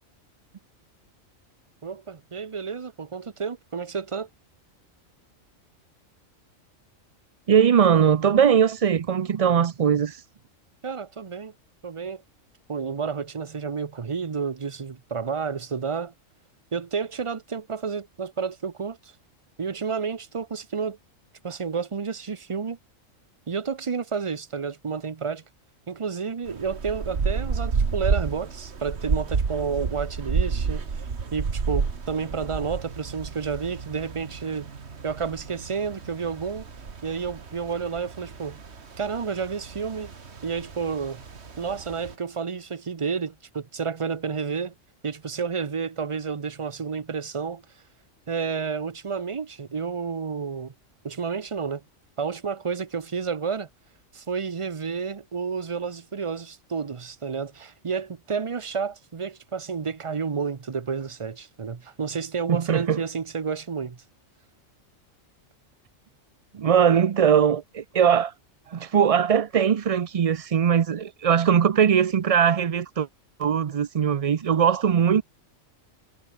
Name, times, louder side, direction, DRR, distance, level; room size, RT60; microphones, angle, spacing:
voice 1, 1.8-4.3 10.8-11.5 11.8-12.2 12.7-16.1 16.7-19.1 19.6-21.0 21.4-22.8 23.5-25.4 25.9-31.0 31.3-34.7 35.0-36.7 37.0-38.6 39.0-40.1 40.4-41.2 41.6-44.7 45.0-47.6 48.3-50.7 51.0-51.8 52.2-53.7 54.1-64.0, right 5 dB, 30° right, 0.6 m, -30 dB
voice 2, 7.5-10.2 62.5-63.0 66.5-68.3 68.7-73.1 73.4-75.2, right 8 dB, 70° right, 0.3 m, -20 dB
sound 1, 26.5-42.1, right 5 dB, 55° right, 1.9 m, -31 dB
omnidirectional pair, 1.4 m